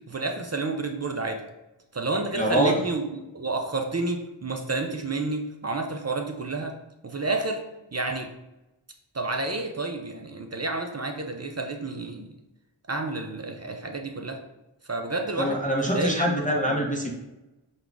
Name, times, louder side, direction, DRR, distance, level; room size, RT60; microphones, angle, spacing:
voice 1, 0.1-1.4 1.9-6.7 7.0-7.6 7.9-8.3 9.1-12.3 12.9-14.4 14.9-16.3 16.7-16.8, right 3 dB, 35° right, 4 dB, 0.4 m, -30 dB
voice 2, 2.4-2.8 15.4-17.1, equal, 15° left, -3 dB, 0.7 m, -24 dB
4.6 x 2.3 x 3.9 m, 0.97 s
wide cardioid pair, 45°, 48 cm